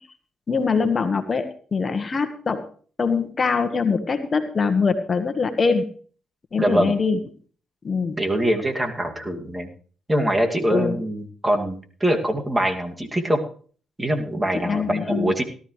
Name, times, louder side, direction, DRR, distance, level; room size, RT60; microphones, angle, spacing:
voice 1, 0.5-2.6 3.0-5.8 6.5-7.2 7.8-8.2 10.7-11.0 14.6-15.3, left 5 dB, 40° left, 8 dB, 1.4 m, -23 dB
voice 2, 6.6-7.0 8.2-9.7 10.1-13.4 14.0-15.4, right 1 dB, 15° right, 4 dB, 2.4 m, -23 dB
17.5 x 13.0 x 3.3 m, 0.44 s
supercardioid pair, 60°, 0 cm